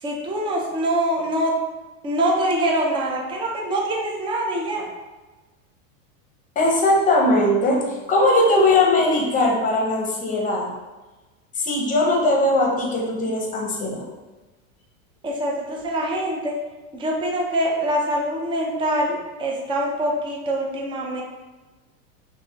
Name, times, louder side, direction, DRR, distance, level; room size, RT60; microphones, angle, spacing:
voice 1, 0.0-1.6 2.0-4.9 15.2-16.6 16.9-21.2, right 1 dB, 15° right, -1 dB, 0.4 m, -24 dB
voice 2, 6.6-10.7 11.6-14.1, left 2 dB, 20° left, -1 dB, 0.8 m, -20 dB
5.9 x 2.6 x 2.8 m, 1.2 s
supercardioid pair, 150°, 41 cm